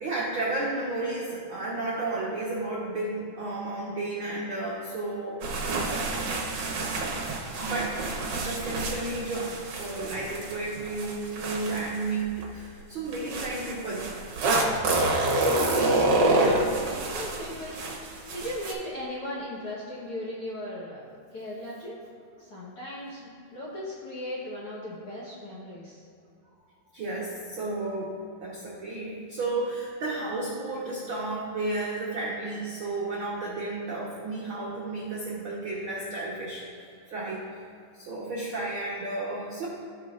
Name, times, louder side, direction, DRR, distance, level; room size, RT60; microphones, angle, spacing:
voice 1, 0.0-5.4 7.6-8.0 8.3-14.1 26.9-28.1 28.4-36.7 37.1-37.5 37.9-39.7, right 2 dB, 80° right, -5 dB, 1.1 m, -32 dB
sound 1, 5.4-12.4 13.1-18.7, right 2 dB, 65° right, 1.6 m, -28 dB
voice 2, 16.2-17.8 18.3-22.0 22.4-26.0, left 1 dB, 60° left, -7 dB, 1.5 m, -37 dB
15.5 x 5.6 x 2.5 m, 2.5 s
omnidirectional pair, 4.0 m